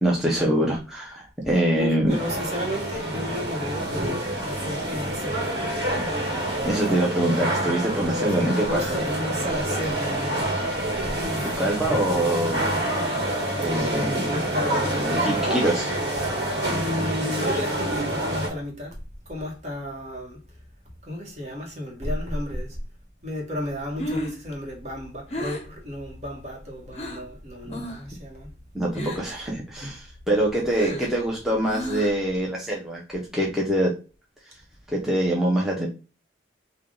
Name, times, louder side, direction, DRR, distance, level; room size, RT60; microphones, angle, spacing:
voice 1, 0.0-2.1 6.6-8.8 11.6-12.7 13.6-14.3 15.0-15.9 27.7-27.8 28.7-33.9 34.9-35.9, right 1 dB, ahead, 0.7 m, -24 dB
voice 2, 1.8-4.3 4.5-5.6 8.3-11.7 13.7-15.7 16.8-19.0 19.2-20.4 21.0-22.8 23.2-28.5 30.9-31.0, left 1 dB, 40° right, 1.2 m, -33 dB
sound 1, 2.1-18.5, right 1 dB, 65° right, 1.2 m, -27 dB
Breathing, 24.0-27.3 27.7-28.1 28.4-29.4 29.8-32.3, equal, 35° left, 0.7 m, -34 dB
3.4 x 2.3 x 3.7 m
head